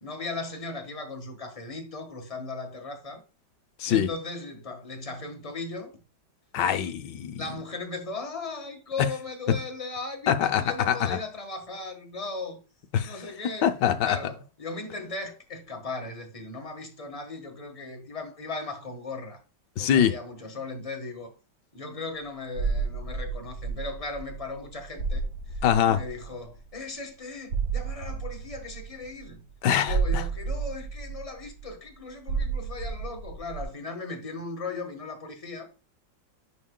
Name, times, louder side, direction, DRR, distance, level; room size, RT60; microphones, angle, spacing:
voice 1, 0.0-3.2 3.9-5.9 6.6-6.9 7.4-12.6 13.0-19.4 19.8-21.3 21.7-25.2 25.5-29.4 29.8-35.7, left 3 dB, 20° left, 1.4 m, -37 dB
voice 2, 6.5-7.4 10.3-11.2 12.9-13.1 13.6-14.2 19.8-20.1 25.6-26.0 29.6-30.2, left 9 dB, 65° left, 1.4 m, -24 dB
sound 1, 22.6-26.6 27.5-29.3 29.9-31.7 32.3-33.6, right 5 dB, 60° right, 2.1 m, -31 dB
10.0 x 5.1 x 2.3 m
omnidirectional pair, 2.1 m